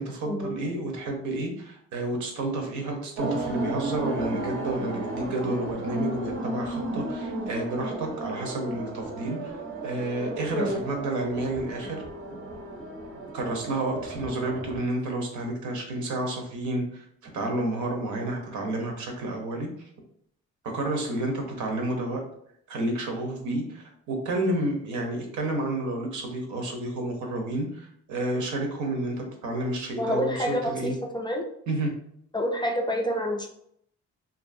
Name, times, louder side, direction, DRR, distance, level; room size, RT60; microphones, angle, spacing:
voice 1, 0.0-12.0 13.3-17.0 17.3-19.7 20.7-22.2 22.7-31.0 31.7-31.9, right 2 dB, 75° right, 2 dB, 0.8 m, -30 dB
sound 1, 3.2-14.8, right 1 dB, 40° right, 0.7 m, -34 dB
voice 2, 10.5-10.8 30.0-31.4 32.3-33.5, equal, 15° left, 1 dB, 0.3 m, -28 dB
2.6 x 2.4 x 2.5 m, 0.69 s
cardioid pair, 90°, 30 cm